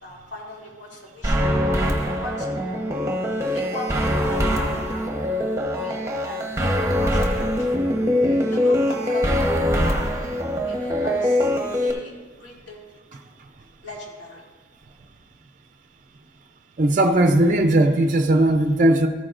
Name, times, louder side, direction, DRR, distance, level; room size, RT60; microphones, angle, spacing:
voice 1, 0.0-2.9 3.5-5.2 5.7-7.7 8.5-10.1 10.7-12.1 12.4-12.8 13.8-14.4, left 1 dB, 65° left, -3 dB, 2.6 m, -38 dB
sound 1, 1.2-11.9, equal, 15° right, 0.9 m, -23 dB
voice 2, 16.8-19.1, right 1 dB, 40° right, 6 dB, 0.5 m, -18 dB
14.0 x 8.9 x 2.5 m, 1.4 s
head